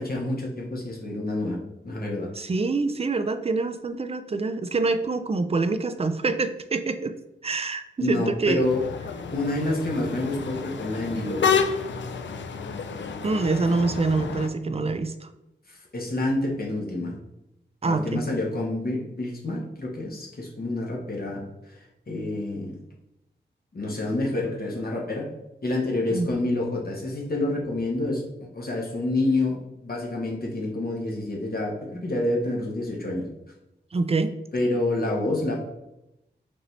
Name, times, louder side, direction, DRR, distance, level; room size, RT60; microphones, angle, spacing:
voice 1, 0.0-1.6 1.8-2.3 3.9-4.0 8.0-8.8 9.3-11.6 15.7-17.2 17.8-21.7 22.1-22.8 23.7-25.3 25.6-33.3 34.5-35.6, left 2 dB, 55° left, -1 dB, 1.1 m, -28 dB
voice 2, 2.4-7.1 7.4-8.7 13.2-15.3 17.8-18.3 26.1-26.3 33.9-34.3, right 3 dB, 35° right, 9 dB, 0.4 m, -25 dB
sound 1, 8.6-14.5, left 6 dB, 75° left, 0.4 m, -30 dB
5.2 x 2.8 x 3.2 m, 0.87 s
wide cardioid pair, 65°, 19 cm